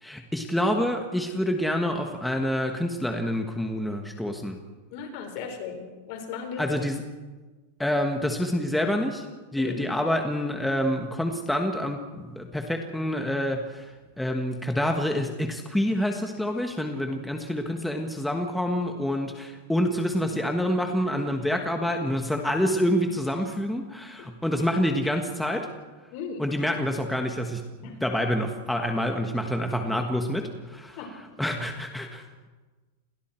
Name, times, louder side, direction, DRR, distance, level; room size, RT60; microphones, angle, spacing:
voice 1, 0.0-4.6 6.6-7.0 7.8-9.3 9.5-25.7 26.4-31.0 31.4-32.2, equal, ahead, 3 dB, 1.3 m, -27 dB
voice 2, 4.9-6.8 9.6-9.8 24.2-24.3 26.1-26.4 27.8-28.0 31.0-31.1, left 5 dB, 50° left, 4 dB, 4.9 m, -36 dB
29.5 x 22.0 x 4.5 m, 1.3 s
supercardioid pair, 160°, 0 cm